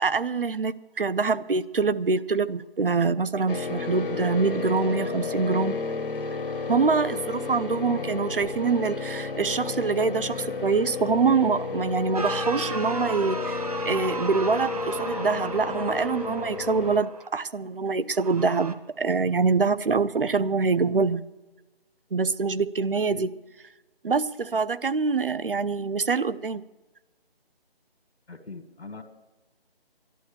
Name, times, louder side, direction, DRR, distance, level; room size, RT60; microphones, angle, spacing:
voice 1, 0.0-5.8 6.7-21.2 22.1-23.3 24.0-26.6, right 4 dB, 60° right, 14 dB, 0.8 m, -25 dB
sound 1, 3.5-17.0, left 5 dB, 60° left, 0.9 m, -32 dB
sound 2, 12.1-17.3 18.1-18.7, right 3 dB, 40° right, 1.0 m, -35 dB
voice 2, 28.3-29.0, left 3 dB, 90° left, 4 dB, 1.9 m, -41 dB
12.5 x 11.5 x 7.1 m, 1.1 s
figure-of-eight pair, 170°, 31 cm